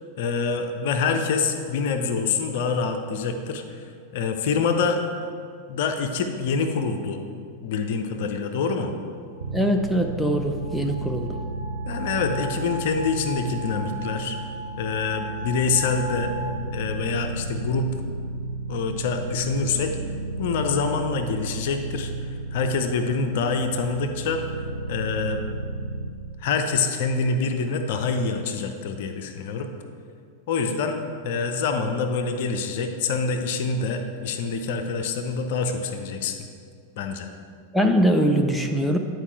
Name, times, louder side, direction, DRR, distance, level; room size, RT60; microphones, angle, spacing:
voice 1, 0.2-5.0 5.7-7.2 7.6-8.9 11.9-14.4 14.8-16.3 16.7-17.9 18.7-20.0 20.4-22.1 22.5-24.4 24.9-25.4 26.4-29.7 30.5-36.4 37.0-37.3, left 4 dB, 50° left, 6 dB, 0.6 m, -26 dB
sound 1, 9.4-16.5, right 2 dB, 30° left, 1.7 m, -38 dB
sound 2, 9.4-26.1, right 3 dB, 70° right, 0.6 m, -33 dB
voice 2, 9.5-11.3 37.7-39.0, equal, 5° left, 4 dB, 0.5 m, -22 dB
9.9 x 4.7 x 4.6 m, 2.3 s
figure-of-eight pair, 90°, 0 cm